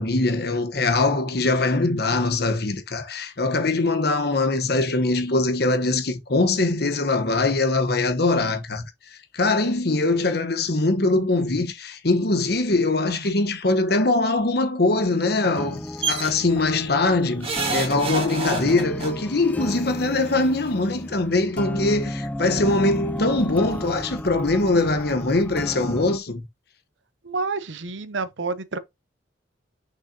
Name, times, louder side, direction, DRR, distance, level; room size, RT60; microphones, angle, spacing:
voice 1, 0.0-8.9 9.1-26.5, left 2 dB, 60° left, 1.1 m, -22 dB
sound 1, 15.4-26.2, left 1 dB, 10° left, 0.3 m, -33 dB
sound 2, 16.0-16.3 17.4-19.1 20.3-20.4 20.7-20.8, right 3 dB, 30° right, 1.7 m, -27 dB
voice 2, 27.2-28.8, right 4 dB, 90° right, 0.8 m, -29 dB
6.4 x 5.6 x 2.8 m
head